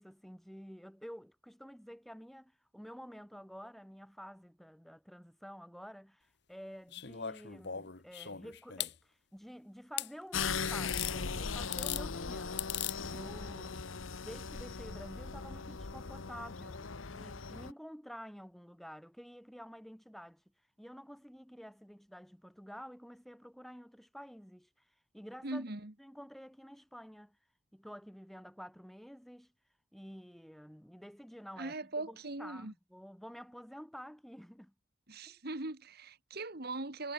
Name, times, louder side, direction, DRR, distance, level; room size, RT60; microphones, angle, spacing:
voice 1, 0.0-12.7 13.1-13.8 14.2-20.4 20.8-24.7 25.1-25.6 26.0-27.4 27.7-29.5 29.9-31.7 32.0-34.7 35.3-35.4, equal, ahead, 5.6 m, -50 dB
sound 1, 6.9-8.9 10.0-10.1 10.9-11.2 11.6-12.0 12.6-13.0 14.2-14.3, left 11 dB, 55° left, 1.3 m, -38 dB
sound 2, 10.3-17.7, left 5 dB, 80° left, 1.1 m, -39 dB
voice 2, 25.4-25.9 31.6-32.7 35.1-37.1, right 2 dB, 50° right, 1.9 m, -40 dB
head